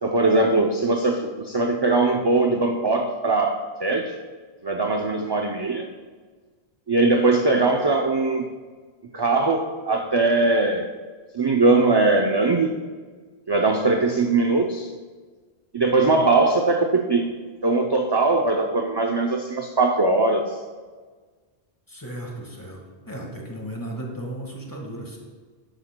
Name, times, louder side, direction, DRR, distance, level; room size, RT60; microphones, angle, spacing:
voice 1, 0.0-4.2 4.6-5.9 6.9-8.5 9.1-10.9 11.3-12.8 13.5-14.9 15.7-17.3 17.6-20.5, right 3 dB, 40° right, 2 dB, 0.4 m, -21 dB
voice 2, 21.9-25.2, right 1 dB, 20° left, 0 dB, 1.6 m, -35 dB
12.0 x 9.9 x 2.2 m, 1.5 s
omnidirectional pair, 1.1 m